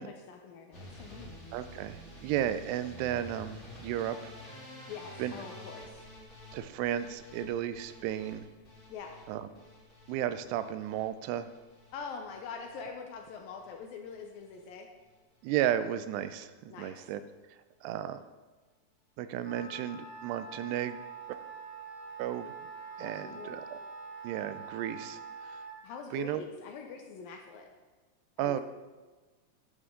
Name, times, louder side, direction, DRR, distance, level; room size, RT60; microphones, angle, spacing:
voice 1, 0.0-1.3 4.9-6.1 8.9-9.2 11.9-14.9 16.7-16.9 23.0-23.6 25.8-27.7 28.4-28.6, left 5 dB, 75° left, 3 dB, 2.3 m, -44 dB
sound 1, 0.7-12.8 13.1-13.7 14.0-14.6 15.0-15.2 15.5-15.6 15.9-16.0, equal, 20° left, 2.5 m, -50 dB
voice 2, 1.5-4.3 5.2-5.3 6.5-8.5 9.3-9.5 10.1-11.5 15.4-17.2 17.8-18.2 19.2-21.0 22.2-22.5 23.0-23.8 24.2-25.6 26.1-26.4 28.4-28.6, right 11 dB, 85° right, 12 dB, 2.7 m, -34 dB
Wind instrument woodwind instrument, 19.4-25.8, right 5 dB, 45° left, 3.1 m, -45 dB
11.0 x 11.0 x 3.8 m, 1.3 s
omnidirectional pair, 4.8 m